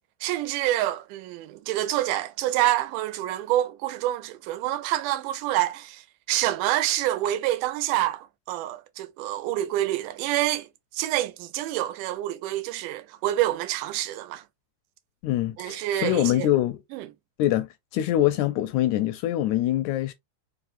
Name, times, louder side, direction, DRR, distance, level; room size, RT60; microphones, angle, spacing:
voice 1, 0.2-10.7 10.9-14.4 15.6-16.5 16.9-17.1, right 14 dB, 85° right, 2.2 m, -27 dB
voice 2, 15.2-16.8 17.4-20.1, left 13 dB, 80° left, 1.8 m, -24 dB
4.8 x 3.2 x 2.4 m
omnidirectional pair, 3.6 m